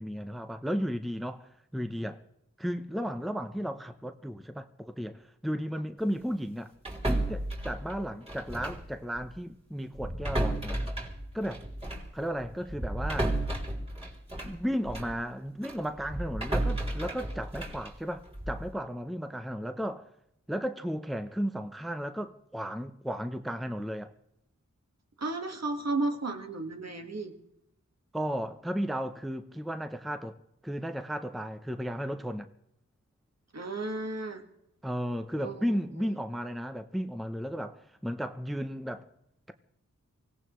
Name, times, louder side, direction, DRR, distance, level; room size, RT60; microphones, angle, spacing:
voice 1, 0.0-2.2 2.6-6.7 7.0-10.9 11.3-11.6 12.1-13.3 14.4-20.1 20.5-24.1 28.1-30.3 30.6-32.5 34.8-39.1, equal, ahead, 0.7 m, -34 dB
sound 1, 6.9-8.9 9.2-9.4 9.9-15.2 15.6-18.7, right 1 dB, 20° right, 3.4 m, -33 dB
voice 2, 25.2-27.3 33.5-34.4 35.4-36.1, right 2 dB, 55° right, 1.6 m, -34 dB
24.5 x 17.0 x 3.1 m
wide cardioid pair, 80°, 31 cm